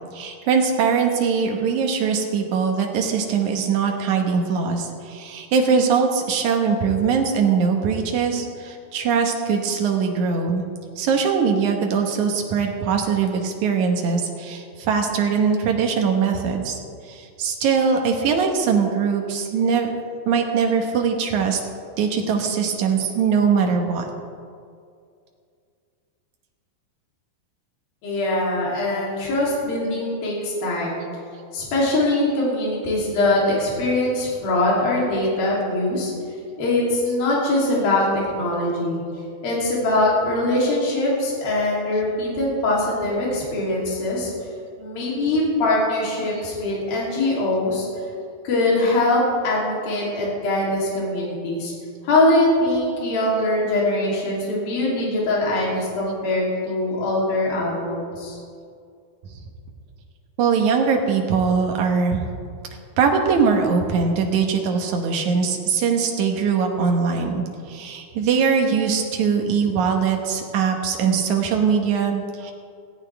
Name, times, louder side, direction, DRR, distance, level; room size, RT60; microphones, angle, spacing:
voice 1, 0.1-10.6 11.0-16.8 17.1-19.9 20.3-21.6 22.0-24.1 37.1-37.2 60.4-62.2 63.0-72.5, right 6 dB, 65° right, 2 dB, 2.0 m, -21 dB
voice 2, 28.0-31.0 31.5-36.1 36.6-39.0 39.4-44.3 44.8-47.9 48.4-51.7 52.0-58.4, left 2 dB, 60° left, -5 dB, 4.8 m, -22 dB
17.0 x 16.0 x 3.4 m, 2.3 s
omnidirectional pair, 4.9 m